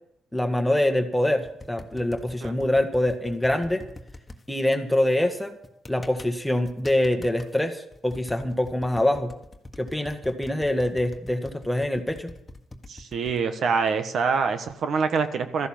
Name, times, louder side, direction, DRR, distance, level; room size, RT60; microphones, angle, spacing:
voice 1, 0.3-3.8 4.5-5.6 5.9-9.3 9.8-12.3, left 1 dB, 5° left, 7 dB, 1.6 m, -24 dB
sound 1, 1.4-4.4 5.6-6.3 6.7-7.5 7.9-13.4, left 2 dB, 20° left, 1.6 m, -44 dB
voice 2, 12.9-15.7, right 5 dB, 60° right, 9 dB, 1.3 m, -25 dB
14.0 x 11.0 x 7.3 m, 0.80 s
cardioid pair, 90°, 0 cm